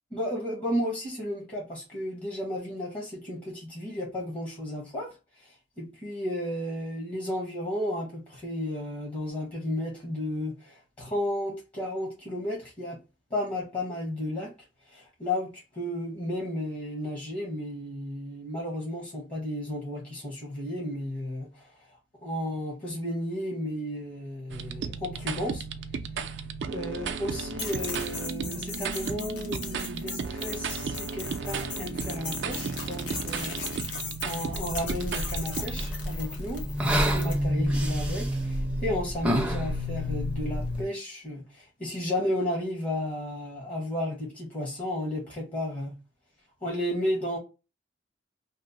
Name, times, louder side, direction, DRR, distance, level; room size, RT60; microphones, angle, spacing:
voice 1, 0.1-13.0 13.3-14.5 14.9-21.9 22.2-25.6 26.7-33.6 34.2-45.9 46.6-47.4, left 1 dB, 30° left, 1.0 m, -33 dB
sound 1, 24.5-35.8, right 5 dB, 70° right, 0.4 m, -34 dB
sound 2, 27.6-37.4, left 4 dB, 90° left, 1.0 m, -38 dB
sound 3, 34.5-40.8, equal, 5° right, 0.5 m, -29 dB
2.9 x 2.0 x 3.8 m
head